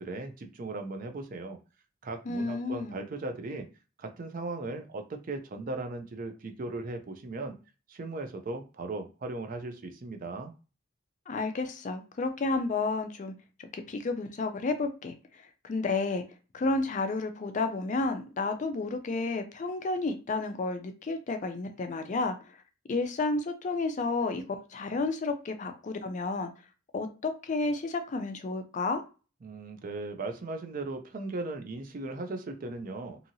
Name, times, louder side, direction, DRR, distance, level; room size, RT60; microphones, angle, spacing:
voice 1, 0.0-1.6 2.0-3.7 4.0-7.5 7.9-10.5 29.4-33.2, right 2 dB, 45° right, 6 dB, 0.4 m, -37 dB
voice 2, 2.3-3.0 11.3-13.3 13.7-15.1 15.6-16.2 16.5-22.6 22.9-24.4 24.7-26.5 26.9-29.0, left 3 dB, 40° left, 7 dB, 0.4 m, -31 dB
2.7 x 2.7 x 2.6 m, 0.33 s
head